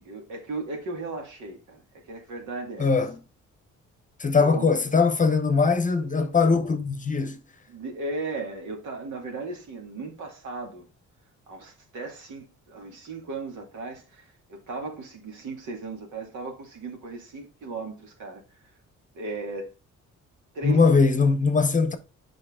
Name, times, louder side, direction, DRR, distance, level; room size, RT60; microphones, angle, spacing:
voice 1, 0.0-1.8 2.1-2.9 4.3-4.7 7.7-10.8 11.5-14.2 14.5-18.4 19.1-19.7 20.5-20.9, right 3 dB, 75° right, 2.3 m, -36 dB
voice 2, 2.8-3.2 4.2-7.4 20.6-22.0, left 4 dB, 25° left, 0.9 m, -21 dB
7.5 x 5.3 x 3.7 m
cardioid pair, 90°, 30 cm